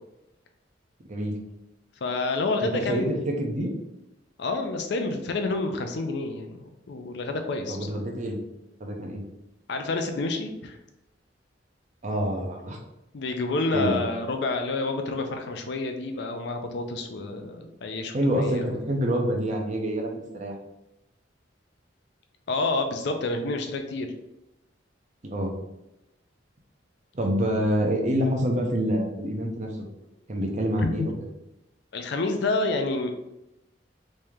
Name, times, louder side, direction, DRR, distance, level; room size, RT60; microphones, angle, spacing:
voice 1, 1.1-1.4 2.6-3.7 7.7-8.4 8.8-9.2 12.0-12.8 13.7-14.0 18.1-20.5 25.2-25.5 27.1-29.7 30.3-31.0, equal, 40° right, 1 dB, 0.6 m, -27 dB
voice 2, 2.0-3.5 4.4-8.0 9.7-10.8 13.1-18.7 22.5-24.1 30.8-31.2 31.9-33.1, left 3 dB, 65° left, 5 dB, 0.5 m, -29 dB
3.2 x 2.8 x 3.5 m, 0.89 s
head